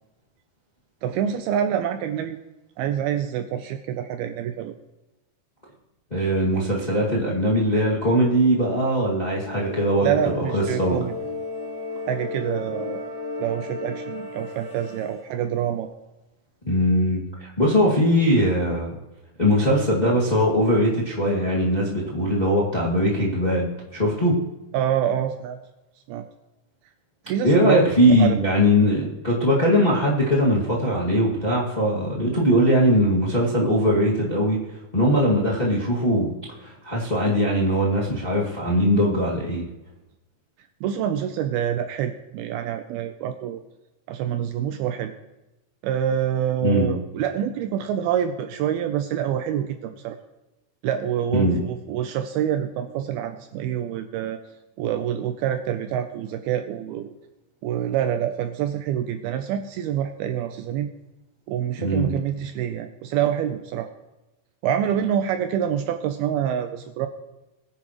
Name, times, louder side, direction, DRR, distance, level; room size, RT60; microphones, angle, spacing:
voice 1, 1.0-2.4 2.8-4.7 10.0-11.1 12.1-13.0 13.4-15.9 24.7-25.6 26.1-26.2 27.3-27.8 28.1-28.4 40.8-43.6 44.1-45.1 45.8-50.2 50.8-54.4 54.8-57.1 57.6-60.9 61.5-63.9 64.6-67.1, right 9 dB, 80° right, 7 dB, 2.3 m, -26 dB
voice 2, 6.1-11.0 16.6-18.9 19.4-24.4 27.4-34.6 34.9-36.3 36.6-39.7 46.6-46.9 51.3-51.6 61.8-62.2, equal, 60° left, -5 dB, 0.4 m, -21 dB
sound 1, 9.4-15.3, left 3 dB, 25° right, 4.0 m, -34 dB
21.5 x 10.0 x 3.1 m, 0.99 s
omnidirectional pair, 4.9 m